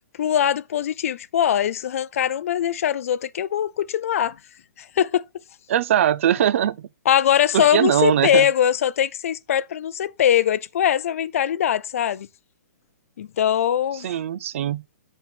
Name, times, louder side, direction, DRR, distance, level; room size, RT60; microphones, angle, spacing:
voice 1, 0.2-4.4 4.8-5.2 7.1-12.3 13.2-14.1, left 10 dB, 55° left, 0.5 m, -21 dB
voice 2, 5.7-6.9 7.5-8.5 13.9-14.8, right 10 dB, 50° right, 0.5 m, -21 dB
9.4 x 4.5 x 4.1 m
hypercardioid pair, 160°, 9 cm